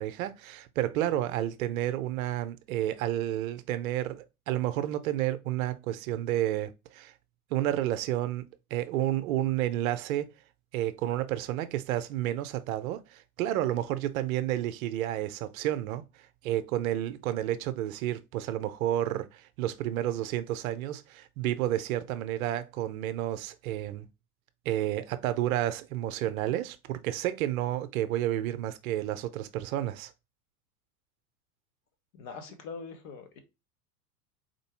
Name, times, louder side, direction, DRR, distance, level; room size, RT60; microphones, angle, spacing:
voice 1, 0.0-7.1 7.5-8.4 8.7-10.3 10.7-16.0 16.4-24.1 24.7-30.1, right 13 dB, 65° right, 0.7 m, -31 dB
voice 2, 32.1-33.4, left 5 dB, 60° left, 1.4 m, -42 dB
4.4 x 2.6 x 4.4 m
hypercardioid pair, 90°, 46 cm